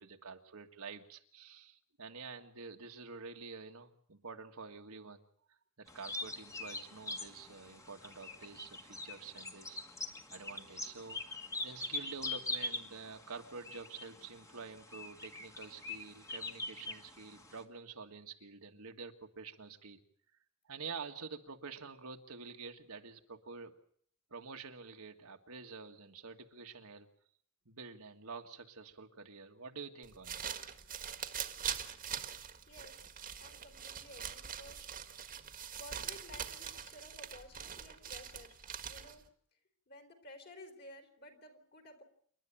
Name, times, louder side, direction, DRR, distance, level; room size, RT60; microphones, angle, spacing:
voice 1, 0.0-5.2 5.8-9.8 10.3-20.0 20.7-23.7 24.3-27.1 27.7-30.4, right 4 dB, 75° right, 4 dB, 1.8 m, -48 dB
sound 1, 5.9-17.6, left 2 dB, 15° left, 1.6 m, -43 dB
sound 2, 30.0-39.3, right 8 dB, 40° right, 1.6 m, -43 dB
voice 2, 32.7-33.1 33.4-34.9 35.8-38.6 38.9-39.2 39.9-42.0, left 1 dB, 50° left, 4 dB, 3.9 m, -54 dB
28.5 x 12.0 x 8.8 m, 0.62 s
head